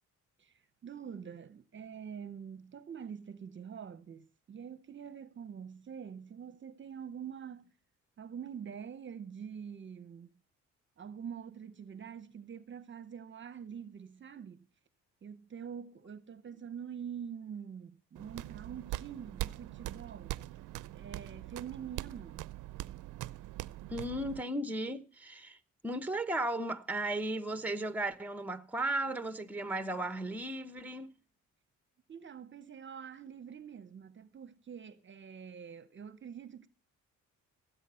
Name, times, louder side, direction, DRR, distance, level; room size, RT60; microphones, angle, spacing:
voice 1, 0.4-7.7 8.2-10.3 11.0-14.7 15.2-20.4 20.9-22.5 32.1-36.7, right 7 dB, 40° right, 0.8 m, -45 dB
sound 1, 18.2-24.4, right 16 dB, 85° right, 0.5 m, -42 dB
voice 2, 23.9-25.6 25.8-31.1, right 1 dB, 5° right, 0.9 m, -35 dB
17.0 x 8.2 x 5.6 m
cardioid pair, 90°, 30 cm